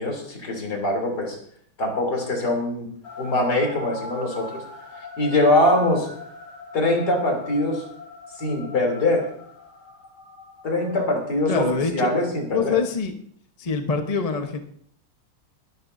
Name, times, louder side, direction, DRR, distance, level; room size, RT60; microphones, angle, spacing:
voice 1, 0.0-1.4 1.8-2.9 3.2-4.6 5.2-6.1 6.7-7.8 8.4-9.3 10.6-12.8, left 1 dB, 45° left, 2 dB, 3.8 m, -23 dB
sound 1, 3.0-12.5, left 3 dB, 85° left, 5.5 m, -41 dB
voice 2, 11.5-12.1 12.5-13.1 13.6-14.6, left 5 dB, 30° left, 5 dB, 0.6 m, -24 dB
23.0 x 12.5 x 2.7 m, 0.63 s
omnidirectional pair, 2.4 m